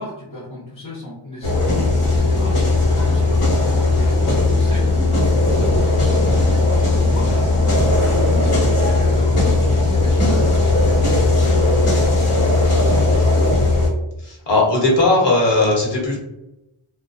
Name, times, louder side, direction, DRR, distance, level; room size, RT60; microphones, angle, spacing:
voice 1, 0.0-7.7 8.2-12.1 12.7-13.5, left 1 dB, 40° left, -6 dB, 0.7 m, -34 dB
sound 1, 1.4-13.9, left 2 dB, 80° left, 0.9 m, -17 dB
voice 2, 14.2-16.2, left 2 dB, 60° left, -3 dB, 1.0 m, -17 dB
2.3 x 2.2 x 2.5 m, 0.92 s
wide cardioid pair, 75°, 50 cm